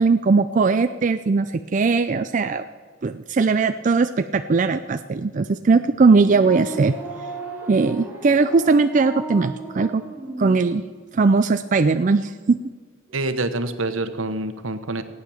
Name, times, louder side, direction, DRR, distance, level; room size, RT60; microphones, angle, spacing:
voice 1, 0.0-2.6 3.0-6.9 7.6-10.0 10.4-10.8 11.1-12.6, right 4 dB, 40° right, 9 dB, 0.4 m, -19 dB
sound 1, 6.2-10.6, right 2 dB, 10° right, 2.3 m, -35 dB
voice 2, 13.1-15.0, right 2 dB, 80° right, 9 dB, 1.1 m, -26 dB
15.0 x 9.5 x 7.1 m, 1.5 s
head